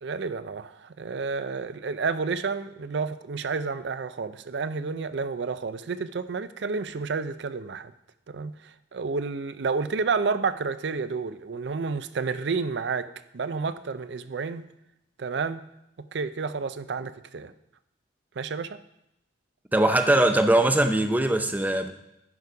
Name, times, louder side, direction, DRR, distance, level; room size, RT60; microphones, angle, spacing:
voice 1, 0.0-7.9 8.3-14.6 15.2-15.6 16.0-17.5 18.4-18.8, right 4 dB, 65° right, 13 dB, 0.5 m, -30 dB
voice 2, 19.7-21.9, right 1 dB, 10° right, 8 dB, 0.5 m, -21 dB
11.0 x 5.3 x 4.7 m, 0.82 s
head